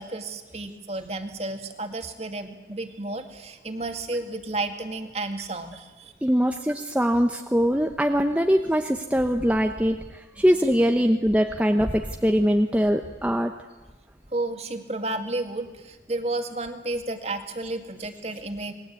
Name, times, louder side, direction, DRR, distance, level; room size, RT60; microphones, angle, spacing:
voice 1, 0.0-6.1 14.3-18.7, right 2 dB, 35° right, 6 dB, 2.2 m, -32 dB
voice 2, 6.2-10.0 10.4-13.5, equal, 10° right, 4 dB, 0.9 m, -22 dB
27.5 x 21.0 x 8.5 m, 1.2 s
head